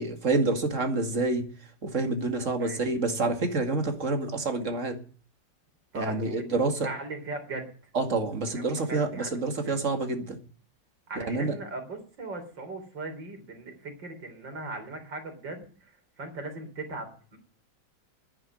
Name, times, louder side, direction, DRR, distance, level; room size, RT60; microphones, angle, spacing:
voice 1, 0.0-1.4 1.8-5.0 5.9-6.9 7.9-10.4 11.2-11.5, right 3 dB, 40° right, 6 dB, 2.4 m, -28 dB
voice 2, 5.9-7.7 8.5-9.8 11.1-17.4, right 2 dB, 75° right, 5 dB, 4.3 m, -39 dB
11.0 x 10.0 x 9.1 m, 0.42 s
omnidirectional pair, 2.0 m